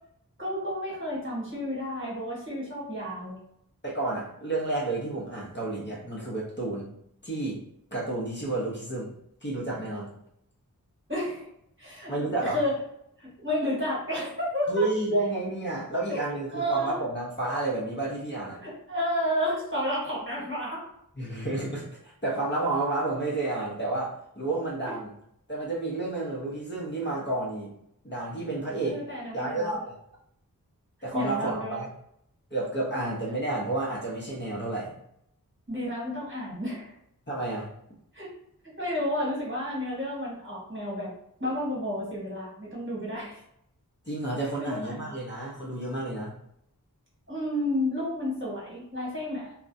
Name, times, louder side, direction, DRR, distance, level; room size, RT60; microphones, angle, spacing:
voice 1, 0.4-3.4 11.1-11.5 11.8-12.1 12.4-12.7 13.4-14.8 16.1-16.2 16.5-17.0 18.6-20.8 28.8-29.8 31.1-31.8 35.7-36.9 38.1-38.3 38.8-41.1 41.4-43.4 44.6-45.0 47.3-49.5, equal, 35° right, -6 dB, 1.2 m, -31 dB
voice 2, 3.8-6.9 7.2-7.6 7.9-9.1 9.4-10.1 12.1-12.6 14.7-18.6 21.2-25.1 25.5-27.7 28.0-29.0 29.3-29.9 31.0-31.9 32.5-34.9 37.3-37.7 44.1-46.3, right 2 dB, 30° left, -5 dB, 0.7 m, -30 dB
2.3 x 2.1 x 2.5 m, 0.75 s
wide cardioid pair, 40°, 36 cm